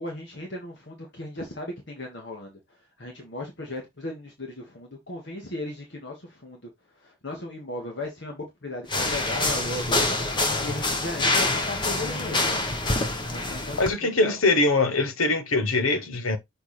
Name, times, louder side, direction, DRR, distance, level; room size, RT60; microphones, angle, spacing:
voice 1, 0.0-12.7 13.3-14.4, left 1 dB, 55° left, 1.6 m, -36 dB
sound 1, 8.9-13.9, left 2 dB, 20° left, 1.0 m, -26 dB
voice 2, 13.8-16.4, left 2 dB, 85° left, 1.1 m, -22 dB
6.5 x 4.6 x 3.2 m
head